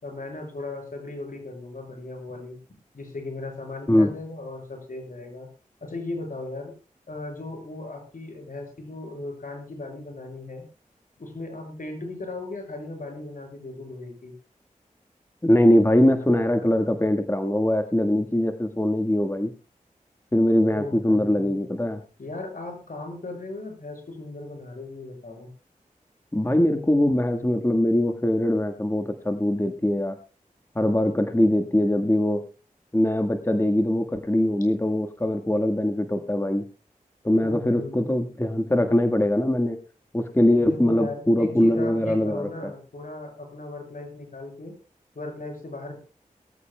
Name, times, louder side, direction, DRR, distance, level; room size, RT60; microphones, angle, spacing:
voice 1, 0.0-2.6 2.9-5.5 5.8-6.7 7.1-10.7 11.2-14.3 20.7-21.6 22.2-25.5 37.4-38.2 40.6-44.7 45.1-46.0, left 2 dB, 70° left, 3 dB, 6.4 m, -37 dB
voice 2, 15.4-19.5 20.3-22.0 26.3-30.2 30.7-32.4 32.9-36.6 37.2-39.8 40.1-42.5, left 1 dB, 15° left, 5 dB, 1.6 m, -22 dB
22.5 x 14.5 x 2.3 m, 0.34 s
cardioid pair, 40°, 15 cm